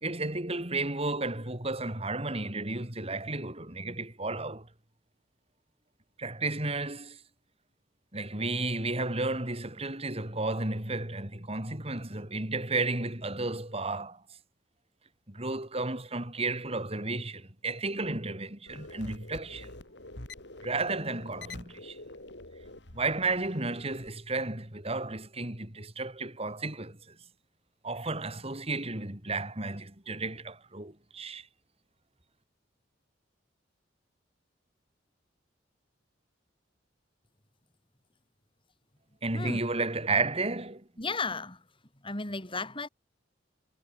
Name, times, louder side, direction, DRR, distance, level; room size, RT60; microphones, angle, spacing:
voice 1, 0.0-4.7 6.2-7.2 8.1-14.2 15.3-19.7 20.6-22.0 22.9-27.2 27.8-31.5 39.2-40.9, right 3 dB, 35° right, 4.2 m, -33 dB
sound 1, 18.7-24.1, left 2 dB, 65° left, 5.7 m, -47 dB
voice 2, 41.0-41.6 42.0-42.9, left 3 dB, 30° left, 4.9 m, -34 dB
head